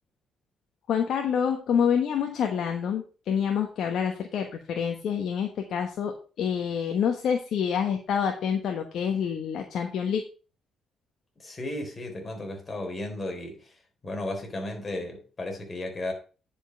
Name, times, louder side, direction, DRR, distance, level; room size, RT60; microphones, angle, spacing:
voice 1, 0.9-10.2, left 7 dB, 70° left, 1.3 m, -27 dB
voice 2, 11.4-13.8 14.0-16.1, left 1 dB, 30° left, 3.7 m, -34 dB
10.0 x 5.5 x 5.3 m
cardioid pair, 90°, 0 cm